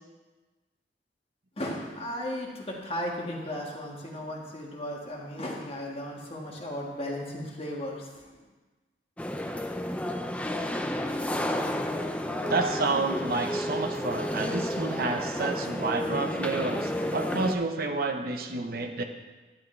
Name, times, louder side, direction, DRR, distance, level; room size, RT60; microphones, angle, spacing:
voice 1, 1.6-8.3, left 1 dB, 35° left, -1 dB, 1.6 m, -35 dB
sound 1, 9.2-17.5, left 1 dB, 5° left, 0.5 m, -31 dB
voice 2, 12.5-19.0, right 3 dB, 55° right, 4 dB, 0.8 m, -29 dB
11.5 x 10.5 x 3.3 m, 1.2 s
head